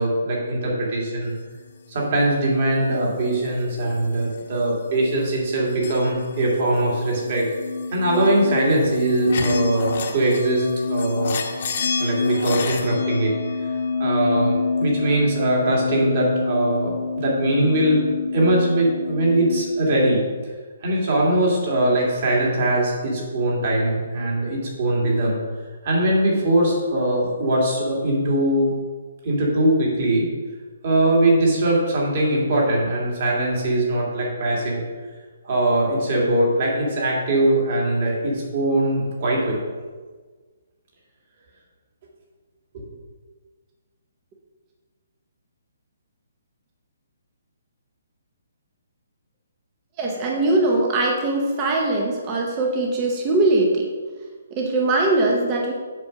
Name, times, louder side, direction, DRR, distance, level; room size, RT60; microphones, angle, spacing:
voice 1, 0.0-1.4 1.9-7.5 7.9-11.4 12.0-18.0 18.3-20.2 20.8-25.4 25.8-28.7 29.2-30.3 30.8-34.8 35.4-39.6 42.7-42.8, right 1 dB, 35° right, -3 dB, 2.1 m, -21 dB
sound 1, 4.0-4.8 5.1-19.6, left 4 dB, 40° left, 1.0 m, -27 dB
voice 2, 50.0-53.9 54.5-55.7, right 2 dB, 15° right, -1 dB, 0.7 m, -21 dB
7.5 x 4.3 x 6.4 m, 1.4 s
hypercardioid pair, 180°, 0 cm